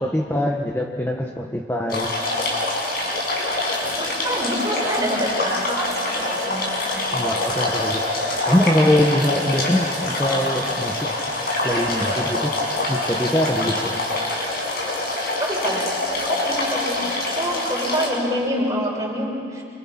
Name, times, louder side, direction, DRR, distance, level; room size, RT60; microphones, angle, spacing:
voice 1, 0.0-2.1 7.1-8.0 8.5-11.1 11.6-12.5 12.9-13.9, left 1 dB, 15° left, 0 dB, 1.3 m, -22 dB
sound 1, 1.9-18.1, left 2 dB, 55° left, 7.3 m, -25 dB
voice 2, 4.0-6.7 15.4-15.8 16.2-19.6, equal, 20° right, -2 dB, 5.8 m, -27 dB
29.0 x 28.0 x 5.9 m, 2.4 s
head